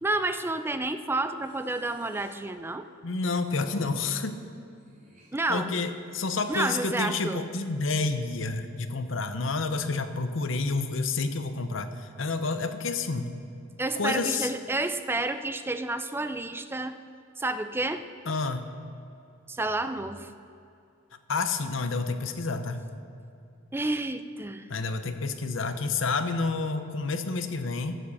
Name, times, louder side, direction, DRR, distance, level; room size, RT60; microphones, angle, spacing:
voice 1, 0.0-2.9 5.3-5.8 6.5-7.4 13.8-17.0 17.4-18.1 19.5-20.3 23.7-24.7, right 2 dB, 10° right, 10 dB, 0.4 m, -30 dB
Breathing, 1.4-2.5 3.3-3.9 4.7-6.7, right 1 dB, 45° right, 2.5 m, -55 dB
voice 2, 3.0-4.4 5.5-13.3 14.0-14.5 18.3-18.6 21.3-22.8 24.7-27.9, left 3 dB, 70° left, 9 dB, 0.8 m, -29 dB
11.0 x 7.5 x 7.0 m, 2.5 s
head